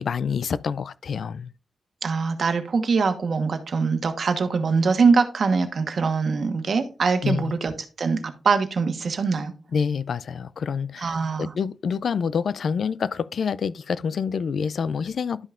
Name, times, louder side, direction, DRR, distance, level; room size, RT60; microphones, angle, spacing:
voice 1, 0.0-1.5 7.2-7.5 9.7-15.5, left 6 dB, 70° left, 0.3 m, -27 dB
voice 2, 2.0-7.7 8.0-9.5 11.0-11.5, right 4 dB, 65° right, 1.2 m, -23 dB
12.0 x 5.5 x 2.5 m
cardioid pair, 65°, 0 cm